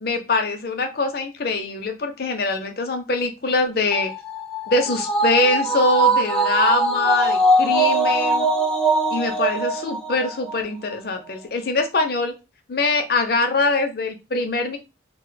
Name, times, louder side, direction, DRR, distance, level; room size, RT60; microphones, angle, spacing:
voice 1, 0.0-4.1 4.7-8.5 9.1-12.4 12.7-14.8, left 3 dB, 55° left, 6 dB, 0.6 m, -23 dB
sound 1, 3.9-10.6 10.9-11.0, right 2 dB, 5° left, 0.4 m, -21 dB
2.4 x 2.1 x 3.9 m, 0.27 s
head